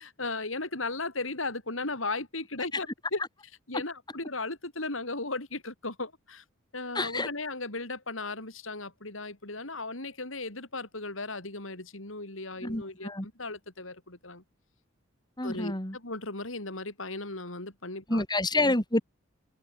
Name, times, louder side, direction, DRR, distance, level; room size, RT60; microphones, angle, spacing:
voice 1, 0.0-3.2 3.7-6.4 6.7-14.4 15.4-18.2, left 3 dB, 80° left, 6.2 m, -36 dB
voice 2, 7.0-7.3 12.6-13.3 15.4-16.0 18.1-19.0, left 2 dB, 20° left, 5.2 m, -28 dB
open air
head